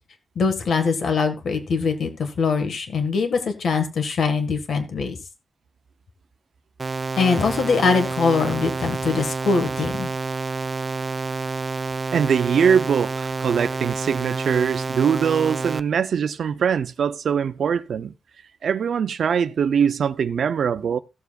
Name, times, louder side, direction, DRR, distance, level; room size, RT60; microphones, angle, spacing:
voice 1, 0.3-5.2 7.1-10.1, left 5 dB, 65° left, 1.7 m, -22 dB
sound 1, 6.8-15.8, right 4 dB, 25° right, 0.4 m, -28 dB
voice 2, 12.1-18.1 18.6-21.0, right 7 dB, 70° right, 0.6 m, -22 dB
16.5 x 7.0 x 2.4 m
wide cardioid pair, 160°, 0 cm